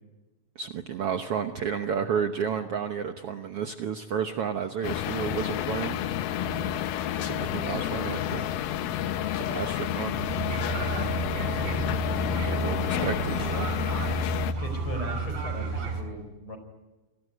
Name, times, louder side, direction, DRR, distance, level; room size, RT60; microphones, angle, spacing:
voice 1, 0.5-6.0 7.2-8.5 9.3-10.2 12.4-13.7, right 7 dB, 85° right, 6 dB, 1.3 m, -31 dB
sound 1, 4.8-14.5, left 11 dB, 85° left, 2.9 m, -30 dB
sound 2, 10.1-16.0, right 3 dB, 60° right, 4.9 m, -31 dB
voice 2, 11.4-12.4 14.5-16.6, left 1 dB, 35° left, 8 dB, 5.2 m, -38 dB
28.5 x 19.5 x 9.5 m, 1.1 s
omnidirectional pair, 4.2 m